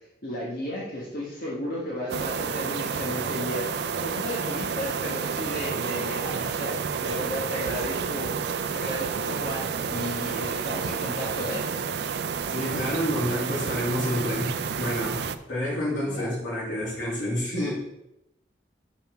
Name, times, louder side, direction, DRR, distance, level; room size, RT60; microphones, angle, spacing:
voice 1, 0.2-11.6 16.0-16.4, left 1 dB, 50° left, -5 dB, 1.6 m, -34 dB
sound 1, 2.1-15.4, right 6 dB, 60° right, 0.4 m, -30 dB
voice 2, 12.5-15.2 15.5-17.7, left 1 dB, 90° left, -5 dB, 3.1 m, -29 dB
5.7 x 5.6 x 5.8 m, 0.87 s
head